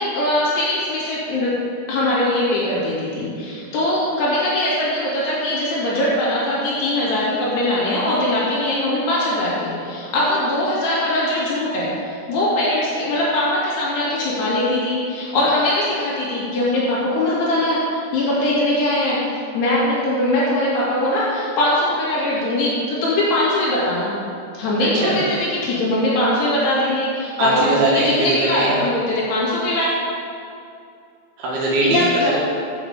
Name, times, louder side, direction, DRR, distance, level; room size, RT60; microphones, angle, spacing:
voice 1, 0.0-1.5 1.9-11.9 12.3-19.2 19.5-24.1 24.5-29.9 31.8-32.4, left 1 dB, 75° left, -7 dB, 4.3 m, -21 dB
voice 2, 24.8-25.2 27.4-28.8 31.4-32.4, right 2 dB, 70° right, -5 dB, 3.5 m, -21 dB
8.5 x 6.6 x 7.1 m, 2.4 s
omnidirectional pair, 4.8 m